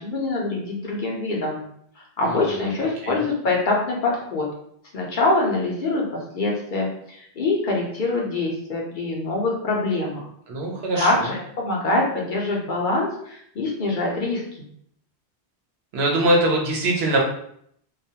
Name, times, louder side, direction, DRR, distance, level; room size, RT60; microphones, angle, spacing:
voice 1, 0.0-1.6 2.0-4.5 4.9-10.2 10.9-14.4, left 2 dB, 60° left, -2 dB, 0.7 m, -24 dB
voice 2, 2.3-2.6 3.0-3.2 10.5-11.3 15.9-17.2, right 1 dB, 80° right, -1 dB, 0.9 m, -22 dB
2.3 x 2.2 x 2.7 m, 0.69 s
omnidirectional pair, 1.1 m